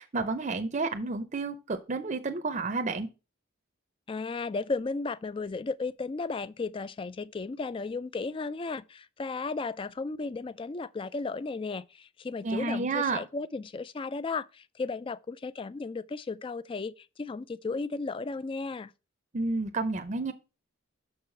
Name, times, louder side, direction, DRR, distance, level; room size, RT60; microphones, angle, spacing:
voice 1, 0.0-3.1 12.4-13.2 19.3-20.3, right 3 dB, 35° right, 0.6 m, -30 dB
voice 2, 4.1-18.9, left 3 dB, 25° left, 0.3 m, -35 dB
6.8 x 4.8 x 5.6 m
head